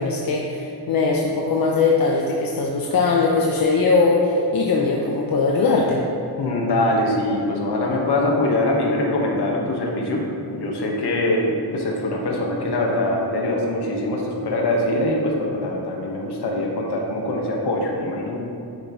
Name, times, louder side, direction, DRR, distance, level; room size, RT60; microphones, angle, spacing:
voice 1, 0.0-6.0, left 4 dB, 60° left, -1 dB, 0.8 m, -20 dB
voice 2, 6.4-10.2 10.5-18.4, left 1 dB, 75° left, -1 dB, 1.6 m, -23 dB
10.5 x 8.0 x 3.2 m, 2.7 s
wide cardioid pair, 170°, 40 cm